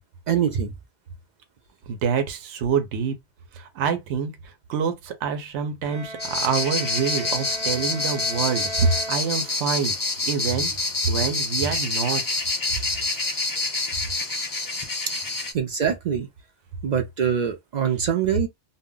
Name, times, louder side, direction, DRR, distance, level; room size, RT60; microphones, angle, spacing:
voice 1, 0.3-0.7 15.5-16.3 16.8-18.5, right 8 dB, 60° right, 0.5 m, -24 dB
voice 2, 1.9-3.2 3.5-12.2, right 6 dB, 80° right, 0.9 m, -26 dB
Bowed string instrument, 5.8-9.8, right 1 dB, 10° right, 0.6 m, -37 dB
sound 1, 6.2-15.5, left 3 dB, 30° left, 0.3 m, -27 dB
2.2 x 2.0 x 3.7 m
omnidirectional pair, 1.2 m